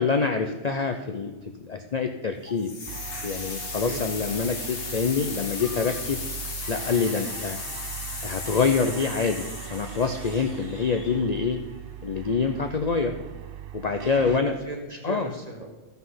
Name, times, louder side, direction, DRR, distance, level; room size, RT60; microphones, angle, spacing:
voice 1, 0.0-1.3 1.6-2.7 3.2-6.2 6.7-7.6 8.2-11.6 12.0-13.2 13.7-14.5 15.0-15.3, left 5 dB, 45° left, 5 dB, 0.6 m, -26 dB
sound 1, 2.6-11.5, left 3 dB, 70° left, 1.8 m, -36 dB
sound 2, 2.9-14.4, right 12 dB, 60° right, 0.7 m, -40 dB
voice 2, 3.7-4.1 13.9-15.7, right 2 dB, 35° right, 1 dB, 1.5 m, -37 dB
14.5 x 5.7 x 5.7 m, 1.2 s
omnidirectional pair, 1.2 m